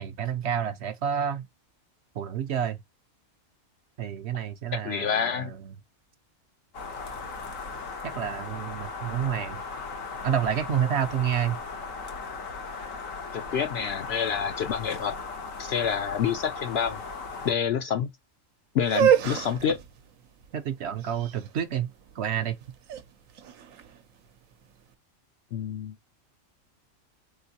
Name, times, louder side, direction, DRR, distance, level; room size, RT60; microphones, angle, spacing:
voice 1, 0.0-1.4 2.1-2.8 4.0-5.7 8.1-9.6 10.2-11.6 20.5-21.9 22.2-22.6, right 9 dB, 65° right, 0.8 m, -29 dB
voice 2, 4.7-5.5 13.3-15.1 15.6-17.0 17.4-18.1 18.7-19.8 25.5-25.9, left 7 dB, 65° left, 0.7 m, -27 dB
sound 1, 6.7-17.5, left 4 dB, 80° left, 1.5 m, -37 dB
sound 2, 18.8-24.7, right 10 dB, 90° right, 1.1 m, -28 dB
4.3 x 3.8 x 2.7 m
omnidirectional pair, 1.4 m